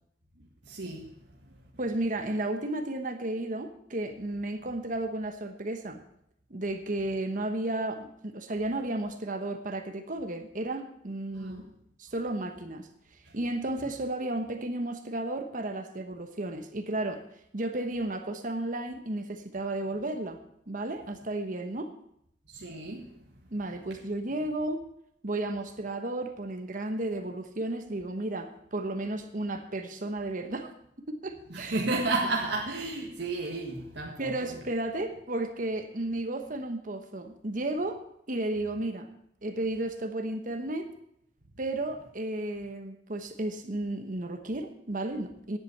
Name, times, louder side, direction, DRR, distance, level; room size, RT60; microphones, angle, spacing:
voice 1, 0.6-1.6 11.3-11.7 13.3-13.4 22.5-23.1 31.5-34.6, right 2 dB, 80° right, -2 dB, 1.8 m, -33 dB
voice 2, 1.8-6.0 6.5-11.6 12.0-12.9 13.3-17.2 17.5-20.4 20.7-21.9 23.5-24.8 25.2-30.7 31.0-31.8 34.2-38.0 38.3-39.1 39.4-40.9 41.6-45.6, right 2 dB, 45° right, 6 dB, 1.1 m, -33 dB
10.5 x 8.4 x 8.0 m, 0.74 s
head